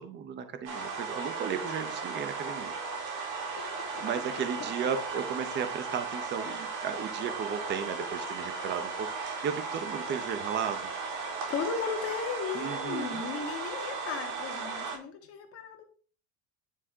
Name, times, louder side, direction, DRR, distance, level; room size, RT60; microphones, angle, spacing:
voice 1, 0.0-2.7 4.0-10.9 12.5-13.2, right 7 dB, 30° right, 10 dB, 0.7 m, -35 dB
sound 1, 0.6-15.0, right 4 dB, 70° right, 3.9 m, -36 dB
voice 2, 3.6-4.2 4.6-4.7 11.5-15.8, left 6 dB, 35° left, 4 dB, 1.7 m, -36 dB
10.0 x 4.2 x 4.9 m, 0.40 s
cardioid pair, 170°, 39 cm